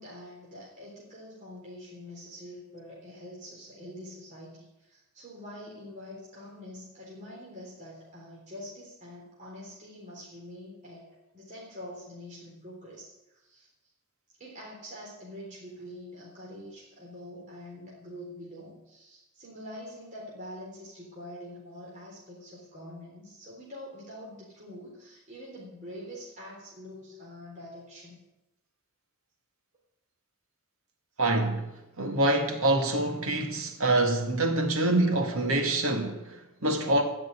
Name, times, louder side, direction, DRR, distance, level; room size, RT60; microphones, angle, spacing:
voice 1, 0.0-11.1 11.3-13.7 14.4-28.2, left 1 dB, 35° right, 3.7 m, -45 dB
voice 2, 31.2-31.7 32.0-37.0, right 2 dB, 70° right, 2.2 m, -26 dB
16.5 x 6.1 x 9.9 m
head